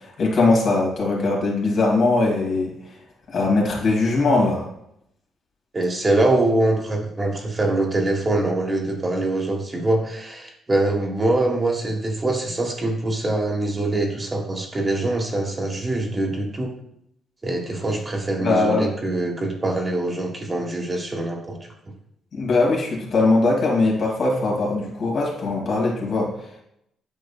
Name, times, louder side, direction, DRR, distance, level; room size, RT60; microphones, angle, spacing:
voice 1, 0.2-2.7 3.3-4.7 18.4-18.9 22.3-26.3, left 3 dB, 60° left, -2 dB, 2.4 m, -20 dB
voice 2, 5.7-16.7 17.4-21.6, right 2 dB, 25° right, 1 dB, 1.4 m, -23 dB
8.8 x 5.3 x 2.4 m, 0.76 s
cardioid pair, 90°, 0 cm